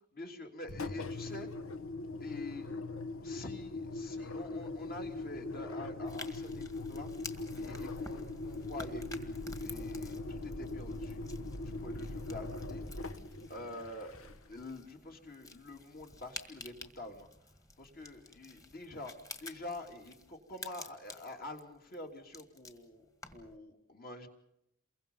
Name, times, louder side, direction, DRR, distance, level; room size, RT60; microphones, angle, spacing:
voice 1, 0.1-1.5 2.2-2.7 3.2-7.1 7.5-11.2 11.6-12.8 13.5-17.3 17.8-19.1 19.4-24.3, left 2 dB, 45° left, 3 dB, 3.1 m, -46 dB
Engine, 0.6-14.6, left 2 dB, 70° left, 1.4 m, -41 dB
sound 1, 6.1-23.6, left 2 dB, 15° left, 1.9 m, -51 dB
28.5 x 23.0 x 5.5 m, 0.83 s
head